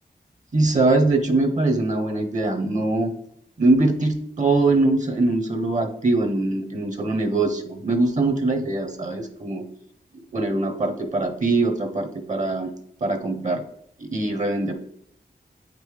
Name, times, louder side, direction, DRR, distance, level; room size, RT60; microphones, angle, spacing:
voice 1, 0.5-3.1 3.6-9.6 10.3-12.7 13.0-13.6 14.0-14.7, right 2 dB, 45° right, 6 dB, 0.9 m, -22 dB
8.5 x 5.3 x 3.3 m, 0.70 s
wide cardioid pair, 120°, 17 cm